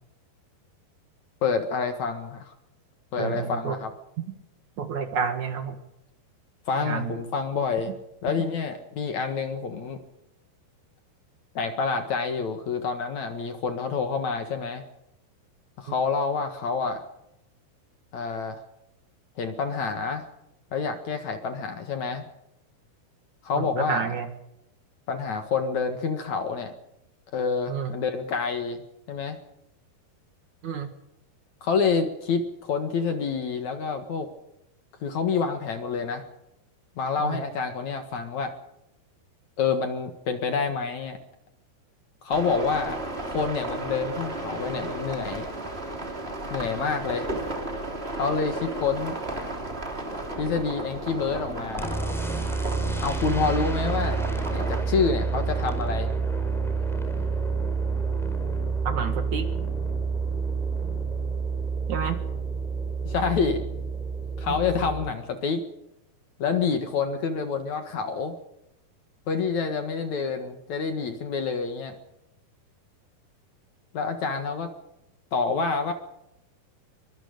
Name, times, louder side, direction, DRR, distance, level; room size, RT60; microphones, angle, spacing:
voice 1, 1.4-2.5 3.1-3.9 6.7-7.9 8.2-10.0 11.5-14.8 15.8-17.0 18.1-18.6 19.4-20.3 20.7-22.2 23.4-24.1 25.1-26.7 27.3-28.8 29.1-29.4 31.6-34.3 35.0-36.3 37.0-38.5 39.6-41.2 42.2-43.0 43.3-45.5 46.5-47.3 48.1-49.2 50.4-52.0 53.0-54.2 54.5-56.1 63.0-63.6 64.4-65.6 66.4-68.4 69.3-72.0 73.9-74.7 75.3-75.9, left 5 dB, 55° left, 7 dB, 2.6 m, -27 dB
voice 2, 3.2-3.8 4.8-5.8 6.8-7.1 23.6-24.3 27.7-28.0 30.6-30.9 37.2-37.4 53.4-53.6 58.8-59.5 61.9-62.2 64.4-64.6, right 6 dB, 55° right, 8 dB, 2.7 m, -30 dB
sound 1, 42.3-54.8, right 2 dB, 15° right, 3.3 m, -34 dB
sound 2, 51.8-65.1, right 4 dB, ahead, 4.4 m, -28 dB
23.5 x 23.0 x 5.3 m, 0.84 s
omnidirectional pair, 4.6 m